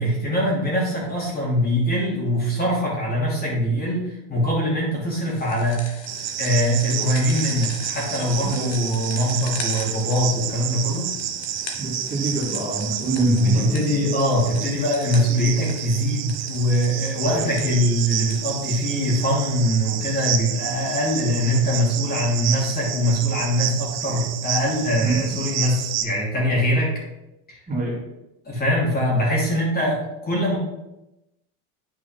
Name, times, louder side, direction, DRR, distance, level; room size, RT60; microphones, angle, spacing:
voice 1, 0.0-6.0 6.4-11.1 13.3-26.9 28.5-30.6, equal, 25° left, -4 dB, 2.9 m, -22 dB
sound 1, 5.2-19.5, left 4 dB, 40° left, 1.7 m, -41 dB
Cricket, 6.1-26.0, right 10 dB, 45° right, 0.9 m, -30 dB
voice 2, 8.4-8.7 11.8-13.9 17.2-17.6 25.0-25.1 27.7-28.0, right 2 dB, 20° right, -4 dB, 3.0 m, -25 dB
9.2 x 4.8 x 4.5 m, 0.93 s
supercardioid pair, 120°, 38 cm